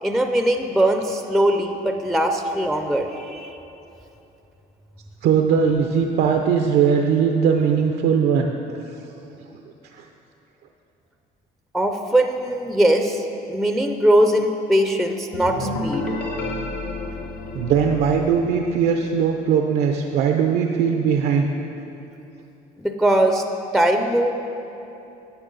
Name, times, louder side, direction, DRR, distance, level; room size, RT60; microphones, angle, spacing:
voice 1, 0.0-3.6 11.7-16.1 22.8-23.4 23.7-24.3, right 1 dB, ahead, 5 dB, 0.5 m, -20 dB
voice 2, 5.2-8.5 9.9-10.1 17.5-21.5, right 7 dB, 75° right, 4 dB, 0.5 m, -19 dB
sound 1, 15.3-19.0, left 2 dB, 80° left, 1.3 m, -30 dB
10.5 x 7.9 x 3.9 m, 2.9 s
cardioid pair, 110°, 17 cm